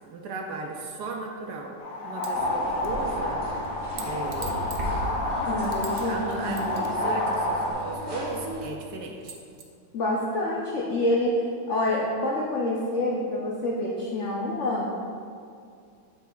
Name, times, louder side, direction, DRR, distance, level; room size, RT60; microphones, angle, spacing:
voice 1, 0.1-1.7 2.0-3.4 4.0-4.6 6.0-9.3, right 3 dB, 70° right, 1 dB, 1.0 m, -36 dB
sound 1, 1.8-7.7, left 1 dB, 55° left, 1.2 m, -29 dB
sound 2, 2.2-2.4 2.8-6.1 6.3-8.3 8.8-8.9 9.2-9.6, right 6 dB, 85° right, 0.6 m, -45 dB
sound 3, 2.3-8.7, equal, 40° right, 0.6 m, -36 dB
voice 2, 5.5-6.6 9.9-15.0, left 1 dB, 75° left, -3 dB, 0.6 m, -27 dB
9.0 x 5.5 x 2.3 m, 2.3 s
omnidirectional pair, 2.1 m